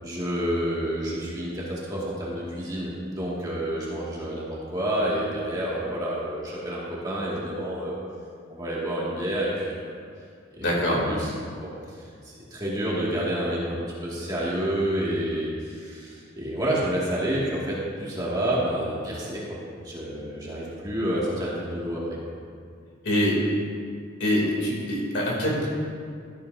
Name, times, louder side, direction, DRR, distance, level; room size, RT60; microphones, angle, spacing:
voice 1, 0.0-8.0 8.5-10.0 10.5-11.3 11.6-22.1, right 1 dB, 20° right, -7 dB, 2.2 m, -29 dB
voice 2, 10.6-11.0 23.0-23.4 24.2-25.7, equal, 60° left, -3 dB, 3.0 m, -24 dB
13.5 x 12.5 x 2.8 m, 2.2 s
head